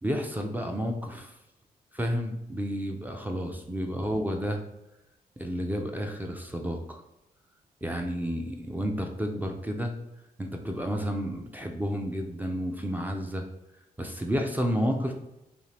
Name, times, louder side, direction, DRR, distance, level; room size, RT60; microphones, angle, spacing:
voice 1, 0.0-1.3 1.9-4.6 5.4-7.0 7.8-9.9 10.4-13.5 14.0-15.1, equal, 10° right, 3 dB, 0.4 m, -31 dB
2.6 x 2.4 x 3.2 m, 0.89 s
cardioid pair, 80°, 16 cm